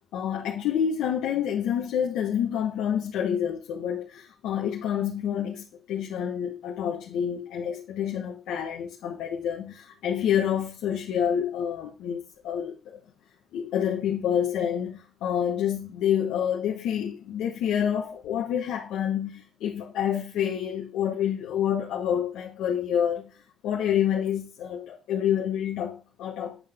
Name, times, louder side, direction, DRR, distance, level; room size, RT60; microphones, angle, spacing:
voice 1, 0.1-12.2 12.4-13.0 13.5-23.3 23.6-26.6, left 9 dB, 90° left, 1.3 m, -28 dB
8.8 x 5.7 x 3.6 m
cardioid pair, 90°, 0 cm